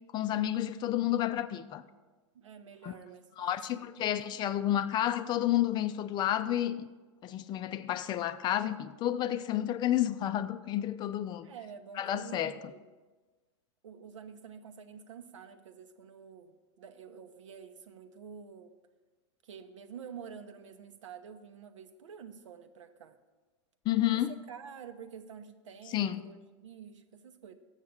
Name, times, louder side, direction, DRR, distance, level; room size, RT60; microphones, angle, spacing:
voice 1, 0.1-1.8 2.8-2.9 3.4-6.9 7.2-11.5 12.0-12.6 23.9-24.3 25.9-26.2, left 12 dB, 30° left, 0.4 m, -30 dB
voice 2, 2.3-4.1 11.4-12.8 13.8-18.8 19.4-23.2 24.1-27.5, right 7 dB, 85° right, 0.8 m, -49 dB
7.3 x 6.4 x 7.2 m
hypercardioid pair, 120°, 16 cm